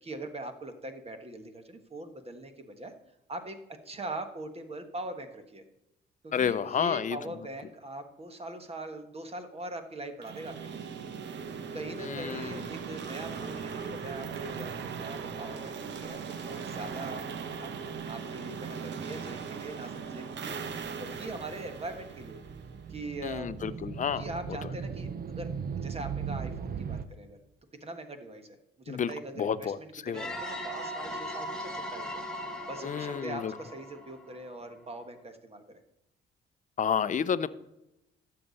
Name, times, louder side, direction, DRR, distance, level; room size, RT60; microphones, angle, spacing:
voice 1, 0.0-2.9 3.3-3.6 3.8-5.6 6.2-10.9 11.7-17.7 18.1-22.5 22.9-23.6 24.2-25.5 25.8-27.4 27.8-32.2 32.7-35.8, right 2 dB, 30° right, 7 dB, 1.4 m, -42 dB
voice 2, 6.3-7.2 12.0-12.7 23.2-24.6 28.9-30.3 32.8-33.5 36.8-37.5, left 7 dB, 40° left, 14 dB, 0.6 m, -31 dB
sound 1, 10.2-23.1, right 6 dB, 65° right, 1.0 m, -39 dB
sound 2, 20.8-27.0, right 6 dB, 50° right, 0.7 m, -38 dB
sound 3, 30.1-34.7, equal, 5° left, 1.6 m, -39 dB
12.5 x 6.9 x 4.1 m, 0.89 s
cardioid pair, 90°, 20 cm